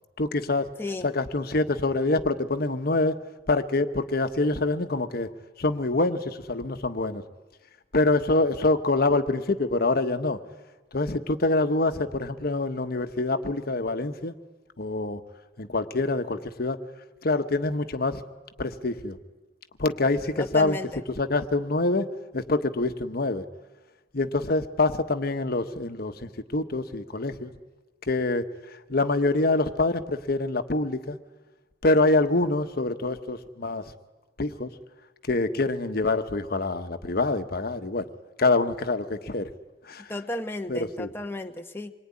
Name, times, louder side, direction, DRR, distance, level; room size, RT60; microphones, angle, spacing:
voice 1, 0.2-0.7 1.0-3.2 3.5-5.3 5.6-7.2 7.9-10.4 10.9-14.3 14.8-15.2 15.6-16.8 17.2-18.2 18.6-19.2 19.8-20.8 21.2-22.1 22.3-23.5 24.1-27.5 28.0-31.2 31.8-33.8 34.4-34.7 35.3-38.1 38.4-39.5 39.8-40.1 40.7-41.1, left 2 dB, 55° left, 9 dB, 1.2 m, -25 dB
voice 2, 0.8-1.1 20.4-20.9 40.1-41.9, left 2 dB, 15° left, 5 dB, 1.0 m, -33 dB
26.5 x 22.0 x 9.8 m, 1.2 s
head